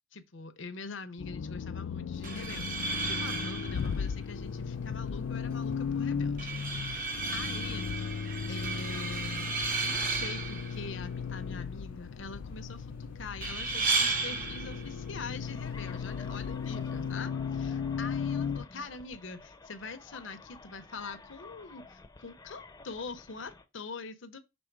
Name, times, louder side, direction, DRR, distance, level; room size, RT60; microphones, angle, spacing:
voice 1, 0.1-6.5 6.8-8.0 8.5-9.5 9.8-24.4, left 4 dB, 65° left, 0.8 m, -44 dB
Accelerating revving vroom, 1.2-18.7, left 6 dB, 85° left, 0.4 m, -36 dB
sound 1, 2.1-17.1, right 3 dB, 45° right, 1.0 m, -35 dB
sound 2, 15.4-23.6, left 3 dB, 20° left, 0.6 m, -51 dB
6.3 x 3.5 x 4.7 m
head